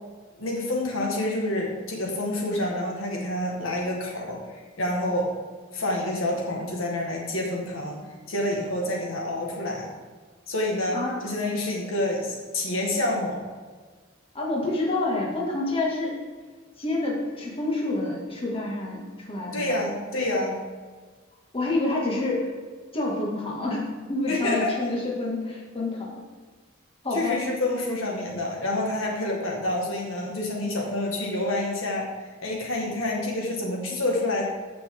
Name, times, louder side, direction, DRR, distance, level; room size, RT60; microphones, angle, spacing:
voice 1, 0.4-5.3 5.7-8.0 8.3-9.9 10.5-13.4 19.5-20.6 24.3-24.7 27.1-32.0 32.4-34.5, left 1 dB, 75° left, -1 dB, 1.9 m, -28 dB
voice 2, 14.3-16.2 16.8-19.8 21.5-22.5 22.9-26.2 27.0-27.4, left 2 dB, 30° left, -3 dB, 2.3 m, -28 dB
15.0 x 6.1 x 3.9 m, 1.5 s
head